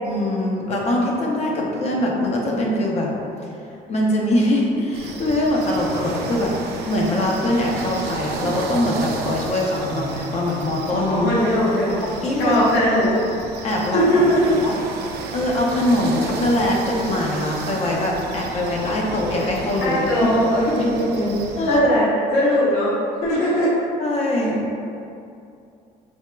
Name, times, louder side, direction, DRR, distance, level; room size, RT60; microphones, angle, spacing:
voice 1, 0.0-3.1 3.9-6.5 6.9-11.3 12.2-12.6 13.6-14.0 14.6-14.8 15.3-20.3 20.7-20.9 21.6-21.9 24.0-24.8, left 1 dB, 40° left, -2 dB, 0.6 m, -22 dB
sound 1, 4.9-21.8, right 3 dB, 75° right, 0.4 m, -33 dB
voice 2, 11.1-12.0 12.4-13.2 13.9-14.6 19.8-21.4 21.7-22.1 22.3-23.0 23.2-23.8, equal, 70° left, -10 dB, 1.3 m, -19 dB
4.4 x 2.9 x 2.2 m, 2.6 s
cardioid pair, 110°, 17 cm